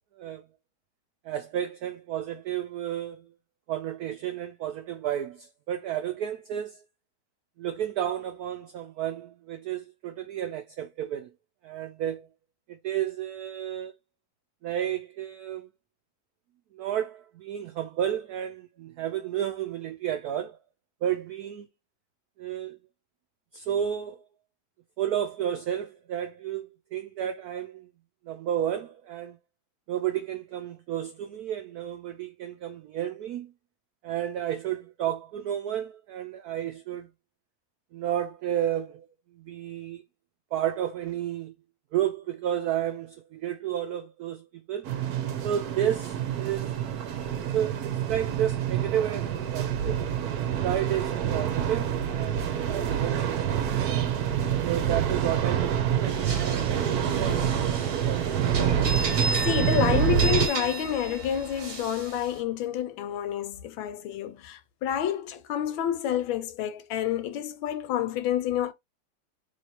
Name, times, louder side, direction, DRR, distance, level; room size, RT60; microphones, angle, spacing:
voice 1, 1.2-3.2 3.7-6.8 7.6-11.3 11.6-12.3 12.7-13.9 14.6-15.7 16.7-20.6 21.0-21.7 22.4-22.8 23.5-24.3 25.0-27.9 28.3-29.4 29.9-33.5 34.0-37.1 37.9-39.1 39.3-40.0 40.5-41.6 41.9-44.9 45.4-46.8 47.5-50.0 50.6-54.0 54.6-58.4, right 10 dB, 85° right, 0.8 m, -32 dB
sound 1, 44.9-60.5, right 9 dB, 65° right, 1.0 m, -27 dB
sound 2, 56.1-62.4, right 3 dB, 35° right, 1.0 m, -34 dB
voice 2, 59.0-68.7, left 10 dB, 80° left, 1.4 m, -29 dB
3.2 x 3.0 x 4.2 m
omnidirectional pair, 2.2 m